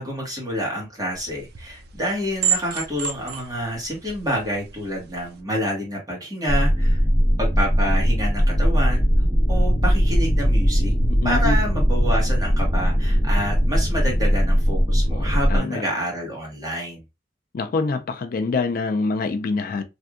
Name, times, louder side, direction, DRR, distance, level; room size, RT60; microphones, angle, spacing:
voice 1, 0.0-7.0 7.4-9.1 9.5-10.9 11.2-17.0, equal, 20° right, 1.5 m, -28 dB
sound 1, 1.1-5.4, right 8 dB, 65° right, 0.5 m, -31 dB
sound 2, 6.5-15.6, equal, 10° left, 1.2 m, -19 dB
voice 2, 11.1-11.6 15.1-15.8 17.5-19.8, left 4 dB, 55° left, 0.4 m, -25 dB
3.3 x 2.6 x 2.4 m
head